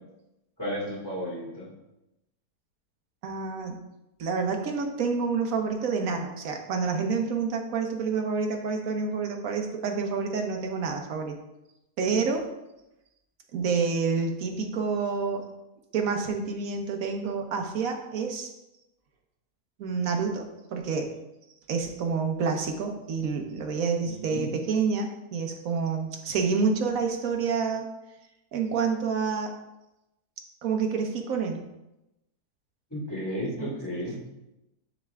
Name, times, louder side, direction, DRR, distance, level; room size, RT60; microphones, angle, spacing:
voice 1, 0.6-1.7 24.0-24.5 32.9-34.2, equal, 10° left, -8 dB, 1.8 m, -33 dB
voice 2, 3.2-3.8 4.2-11.3 12.0-12.4 13.5-15.4 15.9-18.5 19.8-20.5 20.7-21.1 21.7-27.9 28.5-29.5 30.6-31.6 33.6-33.7, right 5 dB, 65° right, 3 dB, 1.2 m, -28 dB
9.7 x 3.3 x 3.5 m, 0.93 s
omnidirectional pair, 1.7 m